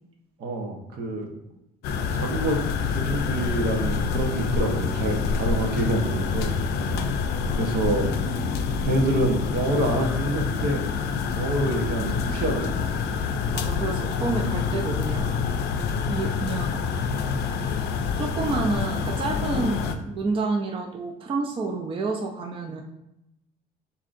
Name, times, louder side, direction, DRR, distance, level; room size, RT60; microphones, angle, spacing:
voice 1, 0.4-1.3 2.1-2.6 2.9-6.5 6.9-7.0 7.5-8.1 8.8-10.8 11.3-12.7, right 1 dB, 70° right, 2 dB, 1.0 m, -26 dB
sound 1, 1.8-20.0, left 5 dB, 80° left, 0.5 m, -27 dB
voice 2, 6.8-7.1 13.5-15.4 16.1-16.8 18.2-22.8, right 3 dB, 30° right, 2 dB, 0.5 m, -29 dB
7.0 x 2.8 x 2.5 m, 0.88 s
cardioid pair, 110°, 17 cm